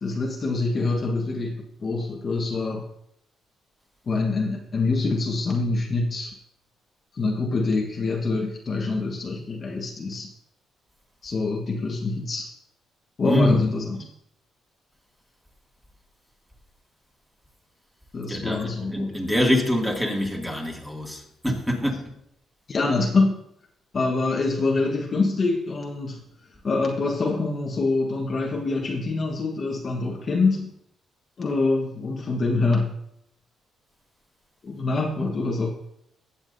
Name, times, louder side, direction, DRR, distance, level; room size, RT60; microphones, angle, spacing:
voice 1, 0.0-2.9 4.1-6.3 7.1-10.3 11.2-12.5 13.2-14.0 18.1-19.1 22.7-23.4 23.9-26.2 26.6-30.7 31.4-32.9 34.6-35.7, left 3 dB, 40° left, 1.4 m, -25 dB
voice 2, 13.2-13.6 18.3-22.1, left 1 dB, 5° right, 2.3 m, -24 dB
16.5 x 7.1 x 2.7 m
cardioid pair, 90°, 0 cm